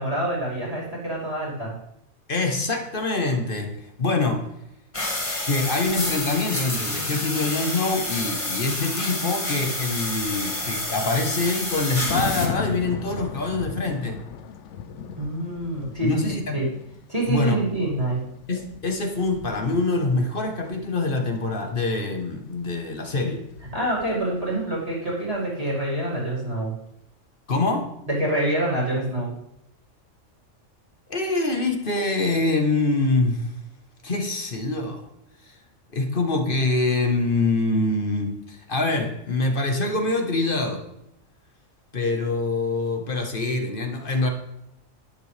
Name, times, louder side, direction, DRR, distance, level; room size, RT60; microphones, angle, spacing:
voice 1, 0.0-1.8 15.2-16.7 17.1-18.2 23.7-26.7 28.1-29.3, right 1 dB, 30° right, -7 dB, 2.7 m, -26 dB
voice 2, 2.3-3.7 4.0-4.5 5.4-14.2 16.0-16.6 17.3-17.6 18.5-23.4 27.5-27.9 31.1-33.5 34.0-35.0 35.4-35.5 35.9-40.8 41.9-44.3, left 3 dB, 45° left, 5 dB, 1.4 m, -25 dB
sound 1, 4.9-12.5, left 1 dB, 25° left, 1.7 m, -29 dB
Thunder, 10.2-24.8 25.1-25.4, left 7 dB, 70° left, 1.0 m, -38 dB
11.5 x 10.0 x 3.4 m, 0.82 s
omnidirectional pair, 1.3 m